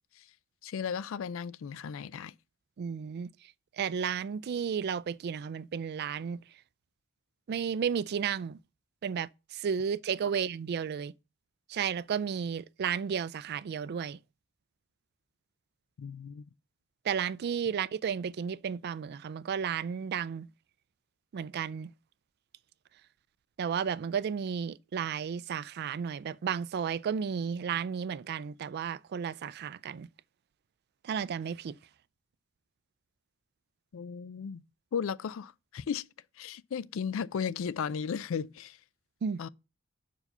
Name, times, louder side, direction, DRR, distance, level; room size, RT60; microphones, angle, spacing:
voice 1, 0.6-2.3 16.0-16.4 33.9-34.6 34.9-36.1 36.4-38.8 39.4-39.5, left 7 dB, 65° left, 0.4 m, -35 dB
voice 2, 2.8-3.3 3.8-6.4 7.5-8.6 9.0-11.1 11.7-14.2 17.1-20.5 21.3-21.9 23.6-30.1 31.0-31.8 39.2-39.4, right 7 dB, 50° right, 0.3 m, -33 dB
5.6 x 4.8 x 6.5 m
head